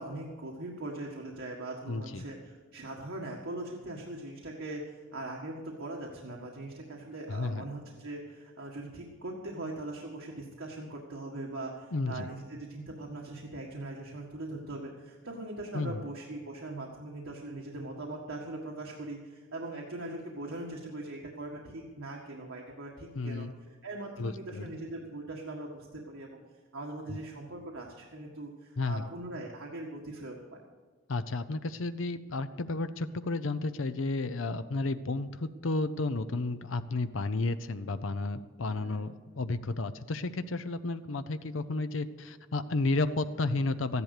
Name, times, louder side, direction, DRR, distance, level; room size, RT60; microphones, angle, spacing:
voice 1, 0.0-26.4 26.7-30.6 38.7-39.0, right 2 dB, 85° right, -2 dB, 1.8 m, -41 dB
voice 2, 1.9-2.2 7.3-7.6 11.9-12.3 15.7-16.0 23.1-23.5 24.2-24.7 27.1-27.2 28.8-29.1 31.1-44.0, left 2 dB, 75° left, 11 dB, 0.7 m, -32 dB
14.0 x 11.0 x 6.6 m, 1.4 s
head